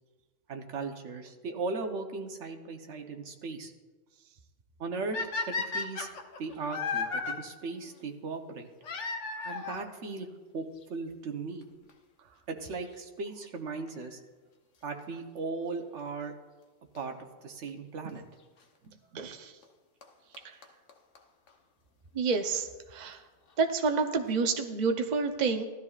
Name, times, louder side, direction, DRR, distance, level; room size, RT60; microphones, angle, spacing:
voice 1, 0.5-3.7 4.8-6.1 6.4-8.7 9.4-11.7 12.5-14.2 14.8-16.3 16.9-18.3 18.8-19.3, right 4 dB, 80° right, 4 dB, 1.3 m, -38 dB
sound 1, 5.1-7.3 8.8-9.9 10.8-10.9 11.6-11.7 11.9-12.0 13.9-14.1 16.9-17.0 18.1-18.2 19.6-19.7 20.0-20.1 20.3-20.4 20.6-20.7 20.9-21.0 21.1-21.2 21.5-21.6, left 4 dB, 75° left, 1.2 m, -34 dB
voice 2, 19.1-19.5 22.1-23.2 23.6-25.6, right 4 dB, 45° right, 5 dB, 0.8 m, -29 dB
16.5 x 12.5 x 2.4 m, 1.3 s
omnidirectional pair, 1.2 m